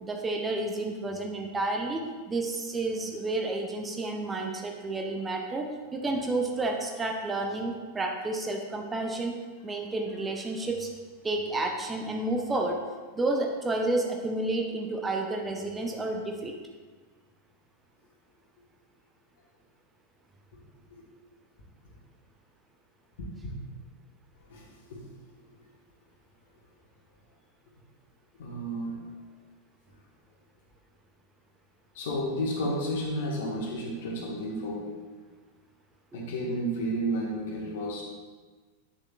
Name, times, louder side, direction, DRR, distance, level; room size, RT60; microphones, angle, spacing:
voice 1, 0.0-9.4 9.6-10.9 11.2-12.8 13.2-16.5, right 2 dB, 15° right, 2 dB, 0.6 m, -30 dB
voice 2, 23.2-23.5 24.5-25.1 28.4-29.0 31.9-35.0 36.1-38.0, equal, 55° left, -1 dB, 1.5 m, -32 dB
8.2 x 6.5 x 2.4 m, 1.4 s
figure-of-eight pair, 90°, 0 cm